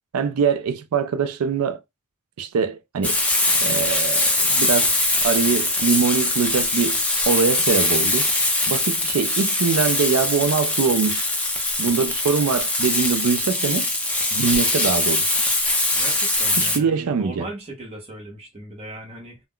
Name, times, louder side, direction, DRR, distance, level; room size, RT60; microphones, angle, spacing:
voice 1, 0.1-1.8 2.4-3.2 3.6-4.9 5.2-8.3 8.7-11.3 11.8-13.9 14.3-15.3 16.6-17.5, right 6 dB, 90° right, 0.4 m, -23 dB
Frying (food), 3.0-16.8, left 2 dB, 5° left, 0.5 m, -22 dB
voice 2, 15.9-19.4, right 1 dB, 30° right, 0.7 m, -38 dB
2.3 x 2.2 x 3.5 m
head